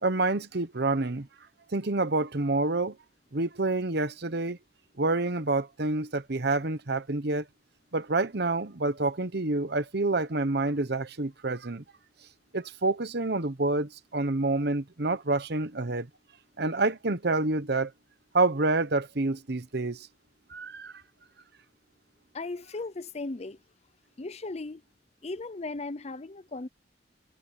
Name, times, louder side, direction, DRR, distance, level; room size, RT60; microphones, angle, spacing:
voice 1, 0.0-1.3 1.7-3.0 3.3-4.6 5.0-7.4 7.9-11.8 12.5-16.1 16.6-17.9 18.3-20.1 20.5-20.9, right 2 dB, 55° right, 1.1 m, -28 dB
voice 2, 22.3-23.6 24.2-24.8 25.2-26.7, left 3 dB, 35° left, 0.6 m, -37 dB
head